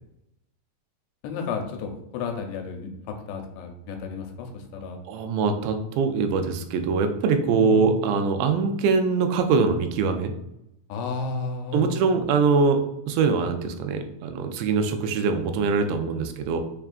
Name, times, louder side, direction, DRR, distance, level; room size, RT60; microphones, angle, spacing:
voice 1, 1.2-5.0 7.5-8.1 10.9-12.0, left 4 dB, 80° left, 4 dB, 2.5 m, -32 dB
voice 2, 5.1-10.3 11.7-12.8 13.1-16.6, right 4 dB, 90° right, 6 dB, 2.7 m, -23 dB
6.7 x 2.3 x 2.4 m, 0.82 s
omnidirectional pair, 4.8 m